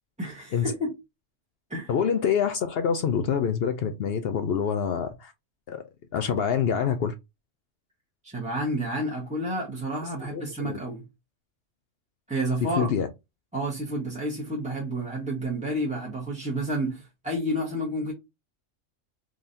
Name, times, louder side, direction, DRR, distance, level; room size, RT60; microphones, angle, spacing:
voice 1, 0.2-0.9 1.7-1.9 8.2-11.0 12.3-12.9 13.5-18.1, right 1 dB, 5° right, 1.0 m, -30 dB
voice 2, 1.9-5.3 5.7-5.8 6.1-7.1 10.2-10.8 12.6-13.1, left 7 dB, 65° left, 0.7 m, -26 dB
3.8 x 3.1 x 2.6 m
omnidirectional pair, 1.3 m